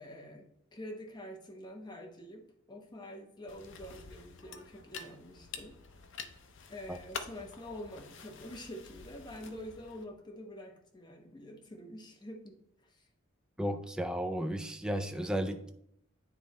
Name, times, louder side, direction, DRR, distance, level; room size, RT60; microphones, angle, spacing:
voice 1, 0.0-2.4 2.7-5.7 6.7-12.6 12.8-13.0, left 1 dB, 20° left, 2 dB, 0.9 m, -46 dB
sound 1, 3.5-10.0, left 5 dB, 65° left, 0.6 m, -48 dB
voice 2, 13.6-15.7, equal, 5° right, 6 dB, 0.4 m, -34 dB
9.3 x 3.2 x 4.1 m, 0.72 s
head